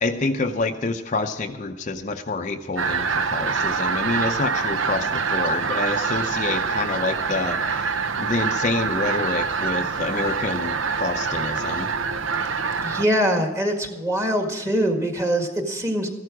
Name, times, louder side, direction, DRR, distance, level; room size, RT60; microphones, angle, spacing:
voice 1, 0.0-11.9, left 3 dB, 35° left, 5 dB, 0.6 m, -27 dB
sound 1, 2.8-13.0, right 5 dB, 80° right, 0.8 m, -25 dB
voice 2, 12.8-16.1, equal, 15° right, 3 dB, 1.7 m, -23 dB
14.5 x 12.5 x 4.8 m, 1.1 s
head